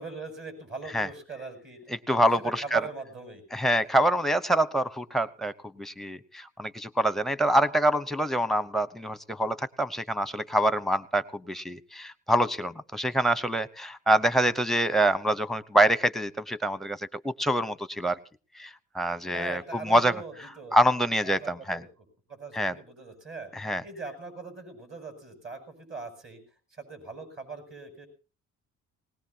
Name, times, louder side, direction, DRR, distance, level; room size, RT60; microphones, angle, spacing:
voice 1, 0.0-1.8 2.1-3.4 19.3-20.8 21.2-21.9 22.3-23.5 23.8-26.4 26.7-28.1, right 4 dB, 45° right, 6 dB, 7.5 m, -40 dB
voice 2, 1.9-2.8 3.5-5.5 5.8-18.2 18.6-20.2 20.7-21.8 22.5-22.7 23.5-23.8, right 1 dB, ahead, 14 dB, 0.9 m, -26 dB
20.0 x 19.0 x 2.9 m, 0.36 s
cardioid pair, 90°, 30 cm